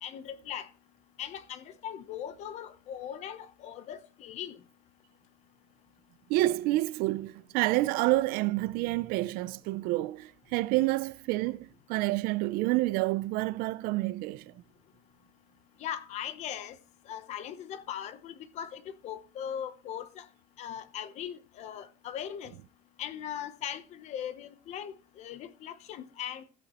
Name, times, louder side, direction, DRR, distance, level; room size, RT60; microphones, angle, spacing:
voice 1, 0.0-0.7 1.2-4.6 15.8-16.8 17.1-20.3 20.6-22.5 23.0-26.4, left 9 dB, 50° left, 0.9 m, -39 dB
voice 2, 6.3-14.5, right 18 dB, 80° right, 0.4 m, -28 dB
14.5 x 8.6 x 3.0 m
cardioid pair, 175°, 15 cm